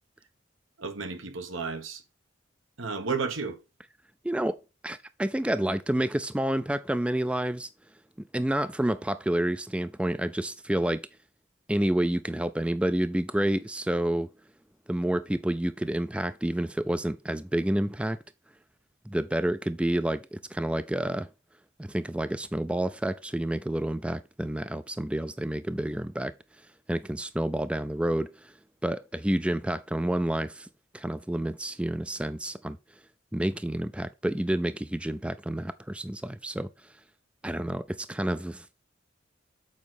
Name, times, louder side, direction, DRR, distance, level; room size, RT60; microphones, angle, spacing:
voice 1, 0.8-2.0 2.8-3.6, right 4 dB, 85° right, 1.4 m, -32 dB
voice 2, 4.2-7.7 8.3-11.0 11.7-14.3 14.9-18.2 19.1-21.3 21.8-26.3 26.9-28.5 28.8-30.7 30.9-32.8 33.3-36.7 37.4-38.7, right 1 dB, 5° right, 0.3 m, -29 dB
7.3 x 4.9 x 6.1 m
head